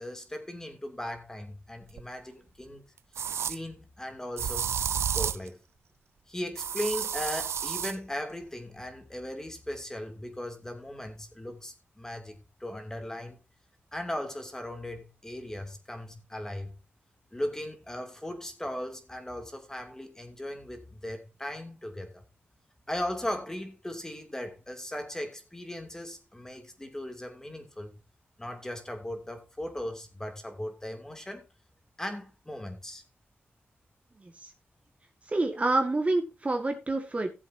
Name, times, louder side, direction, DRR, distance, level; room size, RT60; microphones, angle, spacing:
voice 1, 0.0-2.8 3.5-4.8 5.1-5.6 6.3-13.4 13.9-16.7 17.3-22.2 22.9-28.0 28.4-31.4 32.0-33.0, left 1 dB, 10° left, 2.6 m, -38 dB
sound 1, 2.0-2.1 3.1-3.6 4.4-5.5 6.6-8.0, right 8 dB, 85° right, 0.5 m, -31 dB
voice 2, 35.3-37.3, right 2 dB, 30° right, 1.7 m, -27 dB
16.5 x 7.6 x 2.7 m
wide cardioid pair, 90°, 4 cm